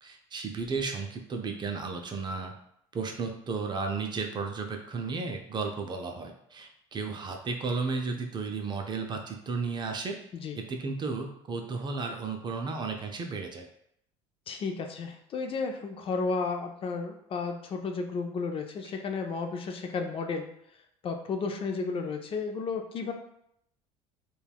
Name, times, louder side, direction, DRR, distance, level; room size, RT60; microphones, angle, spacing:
voice 1, 0.0-2.5 2.9-10.2 10.6-13.7, right 4 dB, 30° right, 3 dB, 0.4 m, -34 dB
voice 2, 14.5-20.5 21.0-23.1, left 4 dB, 40° left, 5 dB, 0.4 m, -33 dB
3.2 x 2.3 x 2.3 m, 0.73 s
supercardioid pair, 90°, 15 cm